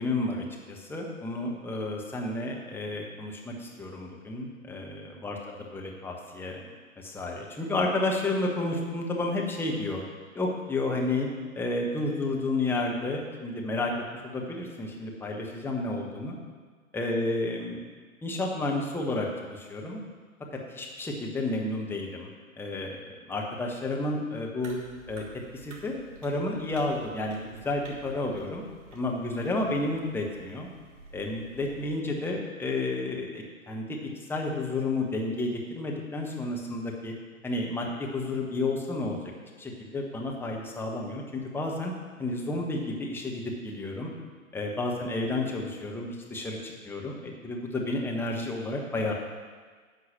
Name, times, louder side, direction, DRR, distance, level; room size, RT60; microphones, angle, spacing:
voice 1, 0.0-6.6 7.0-10.0 10.3-11.3 11.5-13.9 14.2-16.4 16.9-17.8 18.2-20.0 20.7-22.3 22.6-23.0 23.3-24.8 25.1-25.2 25.6-27.4 27.6-28.6 28.9-30.7 31.1-37.1 37.4-39.2 39.6-41.9 42.2-44.1 44.5-47.2 47.4-49.1, left 2 dB, 5° left, -1 dB, 1.2 m, -31 dB
sound 1, 24.6-32.0, right 2 dB, 65° right, 3.5 m, -50 dB
10.5 x 6.1 x 7.3 m, 1.5 s
figure-of-eight pair, 125°, 42 cm